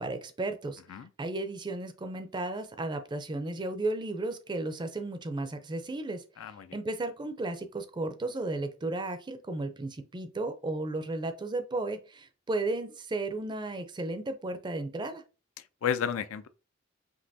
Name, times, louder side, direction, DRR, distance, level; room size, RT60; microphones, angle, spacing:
voice 1, 0.0-15.2, right 2 dB, 20° right, 0.4 m, -34 dB
voice 2, 6.4-6.8 15.8-16.5, left 8 dB, 85° left, 0.4 m, -32 dB
5.3 x 2.9 x 2.7 m
head